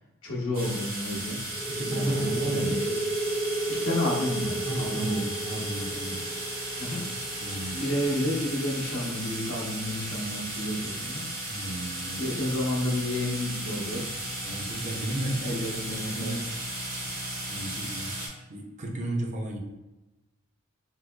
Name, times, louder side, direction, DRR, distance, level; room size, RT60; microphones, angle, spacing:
voice 1, 0.2-1.4 1.8-2.9 3.7-5.2 6.8-7.0 7.7-11.2 12.2-14.1 15.4-16.3, left 1 dB, 85° left, -4 dB, 0.9 m, -30 dB
sound 1, 0.5-18.3, right 1 dB, 85° right, 1.1 m, -35 dB
sound 2, 1.5-8.9, right 2 dB, 25° left, 0.5 m, -33 dB
voice 2, 1.7-2.8 4.6-6.3 7.4-7.8 11.5-12.2 14.4-15.6 16.0-16.4 16.9-17.0 17.5-18.1 18.5-19.6, right 1 dB, 35° right, 1 dB, 0.5 m, -33 dB
3.8 x 2.7 x 2.2 m, 1.0 s
head